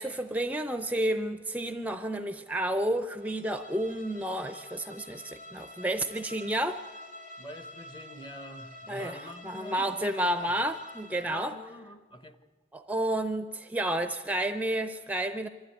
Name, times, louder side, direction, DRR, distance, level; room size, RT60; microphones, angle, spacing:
voice 1, 0.0-6.8 8.9-11.6 12.7-15.5, right 1 dB, 10° right, 9 dB, 0.5 m, -31 dB
Bowed string instrument, 3.2-11.6, left 1 dB, 50° left, 1.4 m, -48 dB
voice 2, 7.4-10.5 11.2-12.4, equal, 25° left, 9 dB, 1.1 m, -45 dB
25.5 x 13.5 x 8.3 m, 1.4 s
head